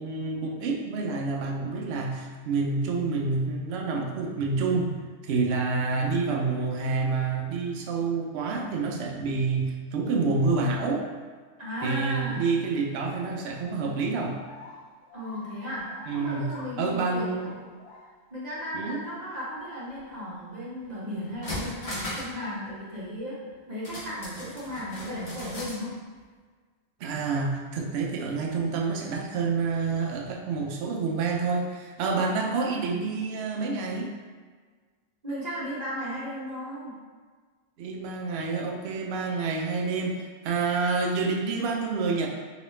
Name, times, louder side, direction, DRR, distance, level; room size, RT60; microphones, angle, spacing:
voice 1, 0.0-11.1 11.8-14.4 16.1-16.5 16.8-17.5 18.7-19.0 27.0-34.1 37.8-42.3, right 4 dB, 65° right, 0 dB, 0.6 m, -28 dB
voice 2, 11.6-12.5 15.1-17.6 18.3-23.4 23.7-25.9 35.2-37.0, equal, 35° right, -8 dB, 0.8 m, -35 dB
sound 1, 14.4-19.2 19.5-20.4 21.4-21.5, left 2 dB, 65° left, 0.8 m, -49 dB
sound 2, 20.8-20.9 21.2-22.4 22.6-22.7 23.8-25.8 26.1-26.2, left 1 dB, 35° left, 0.6 m, -37 dB
3.0 x 2.9 x 3.0 m, 1.5 s
omnidirectional pair, 1.4 m